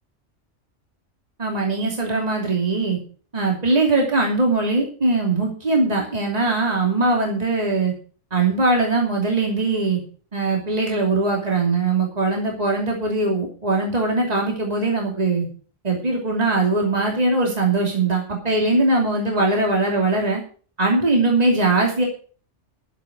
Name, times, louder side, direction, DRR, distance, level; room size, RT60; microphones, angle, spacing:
voice 1, 1.4-3.0 3.3-7.9 8.3-10.0 10.3-15.4 15.8-20.4 20.8-22.0, right 3 dB, 30° right, -1 dB, 2.9 m, -21 dB
11.5 x 9.1 x 6.0 m, 0.41 s
omnidirectional pair, 1.3 m